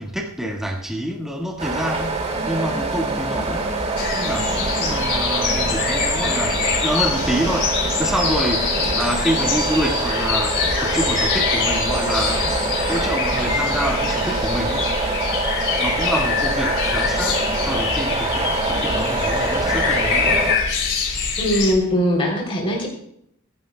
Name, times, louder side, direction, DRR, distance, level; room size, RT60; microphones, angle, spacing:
voice 1, 0.0-12.5 12.8-14.9 15.7-20.5, equal, ahead, -1 dB, 1.8 m, -27 dB
sound 1, 1.6-20.6, right 3 dB, 30° right, 2.3 m, -24 dB
sound 2, 4.0-21.7, left 5 dB, 55° left, 3.6 m, -24 dB
voice 2, 21.4-22.9, equal, 25° left, -2 dB, 3.3 m, -20 dB
25.0 x 12.0 x 2.3 m, 0.73 s
head